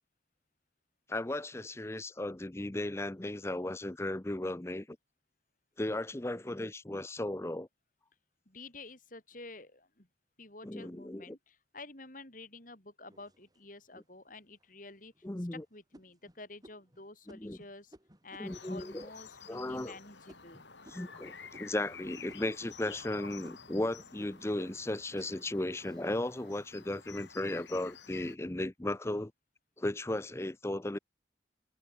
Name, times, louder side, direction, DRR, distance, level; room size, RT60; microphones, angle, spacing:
voice 1, 1.1-5.0 5.8-7.7 10.6-11.4 15.2-15.6 17.3-17.6 18.4-19.1 19.5-20.0 20.9-29.3 29.8-31.0, left 1 dB, 15° left, 0.6 m, -36 dB
voice 2, 8.4-10.1 10.4-15.1 15.5-17.9 18.2-20.6, left 3 dB, 45° left, 6.7 m, -50 dB
sound 1, 13.1-13.9 14.5-14.6 15.1-15.5 15.9-21.2 21.5-22.0 22.3-26.6 27.1-27.6, equal, 20° right, 7.8 m, -59 dB
sound 2, 18.4-28.4, left 6 dB, 75° left, 5.3 m, -51 dB
head